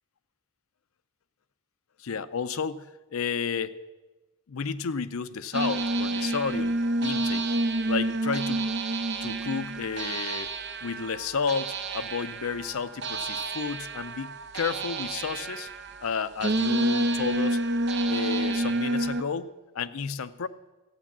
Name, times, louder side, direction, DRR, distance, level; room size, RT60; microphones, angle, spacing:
voice 1, 2.0-3.8 4.5-7.5 7.9-8.7 9.2-10.5 10.8-15.7 16.0-17.6 18.1-19.5 19.7-20.5, left 6 dB, 70° left, 14 dB, 0.5 m, -32 dB
sound 1, 5.5-19.2, right 2 dB, 55° right, 0.7 m, -29 dB
13.5 x 9.1 x 7.3 m, 1.2 s
head